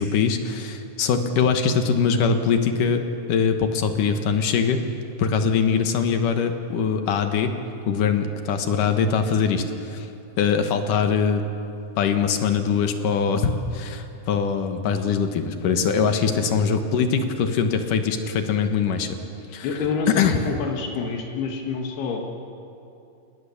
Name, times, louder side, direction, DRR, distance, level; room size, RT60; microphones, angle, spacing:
voice 1, 0.0-3.0 3.3-4.8 5.2-7.5 7.9-10.1 10.4-11.4 12.0-19.2 19.5-19.7 20.1-20.4, left 6 dB, 65° left, 7 dB, 2.6 m, -22 dB
voice 2, 19.6-22.3, left 4 dB, 85° left, 2 dB, 3.6 m, -27 dB
29.0 x 18.5 x 7.1 m, 2.7 s
omnidirectional pair, 4.5 m